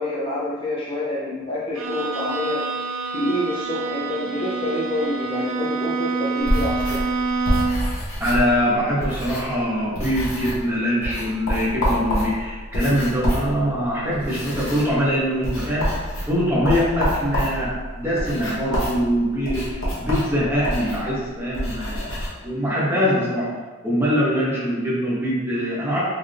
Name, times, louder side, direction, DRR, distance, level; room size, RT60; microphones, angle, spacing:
voice 1, 0.0-2.6 3.1-7.1, left 1 dB, 25° left, -7 dB, 0.6 m, -27 dB
Bowed string instrument, 1.7-8.0, right 4 dB, 70° right, 0.4 m, -27 dB
sound 1, 6.4-9.7 9.9-10.7 11.0-22.3, equal, 75° left, 1.1 m, -27 dB
voice 2, 8.2-23.5 23.8-26.0, equal, 10° right, -7 dB, 0.8 m, -23 dB
3.7 x 2.6 x 3.3 m, 1.3 s
head